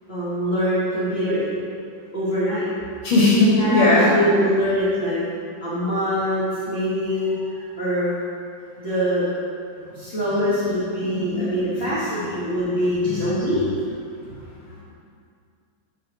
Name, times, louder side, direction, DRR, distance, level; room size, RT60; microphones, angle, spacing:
voice 1, 0.1-1.5 2.1-2.6 3.4-5.2 5.6-8.1 8.8-9.3 9.9-13.6, equal, 30° left, -14 dB, 1.9 m, -24 dB
voice 2, 3.0-4.1 11.2-11.9 13.0-13.2, left 2 dB, 85° left, -6 dB, 2.5 m, -18 dB
12.0 x 4.7 x 3.0 m, 2.3 s
omnidirectional pair, 2.2 m